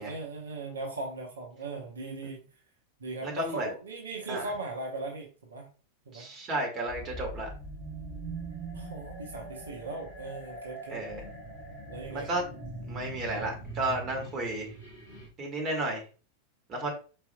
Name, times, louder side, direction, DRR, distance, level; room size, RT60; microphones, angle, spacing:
voice 1, 0.0-2.5 3.0-5.7 6.1-6.3 8.7-11.1 11.9-12.3, right 2 dB, 70° right, 0 dB, 0.9 m, -38 dB
voice 2, 3.2-3.7 4.3-4.5 6.1-7.5 10.9-11.2 12.1-12.4 12.8-14.7 15.4-16.0 16.7-16.9, right 2 dB, 30° right, 1 dB, 1.6 m, -32 dB
sound 1, 6.9-15.3, right 2 dB, 50° left, 1.6 m, -42 dB
4.6 x 4.4 x 2.2 m, 0.37 s
figure-of-eight pair, 90°, 0 cm